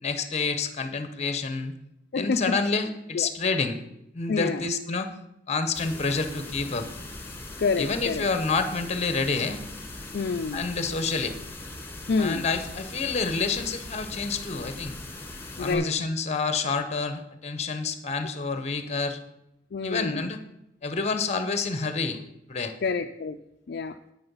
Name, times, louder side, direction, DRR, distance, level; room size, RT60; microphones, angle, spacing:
voice 1, 0.0-1.7 2.1-3.8 4.1-5.1 5.5-6.9 7.8-9.6 10.5-11.4 12.2-15.0 15.6-19.2 19.8-20.4 20.8-22.2 22.5-22.7, left 4 dB, 40° left, 10 dB, 0.9 m, -28 dB
voice 2, 2.1-2.6 3.1-3.3 4.3-4.7 7.6-8.2 10.1-10.6 12.1-12.4 15.6-15.9 19.7-20.3 22.8-23.4 23.7-24.0, left 4 dB, 60° left, 6 dB, 0.4 m, -28 dB
sound 1, 5.7-15.7, left 2 dB, 15° left, 1.6 m, -40 dB
9.6 x 8.7 x 5.5 m, 0.85 s
head